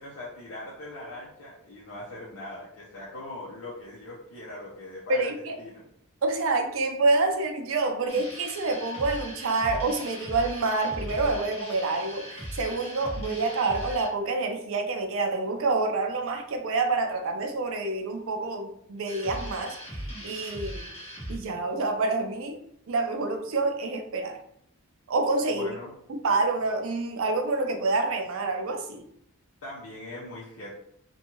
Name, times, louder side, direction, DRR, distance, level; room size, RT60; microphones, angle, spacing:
voice 1, 0.0-5.3 5.6-5.8 25.5-25.9 29.6-30.7, left 1 dB, 65° left, -7 dB, 0.6 m, -41 dB
voice 2, 5.1-5.6 6.2-20.9 21.3-22.6 22.9-24.4 25.1-25.7 26.1-29.1, right 3 dB, 65° right, 4 dB, 0.4 m, -27 dB
sound 1, 8.1-14.1 19.1-21.4, equal, 30° left, 1.0 m, -39 dB
2.5 x 2.3 x 2.9 m, 0.71 s
head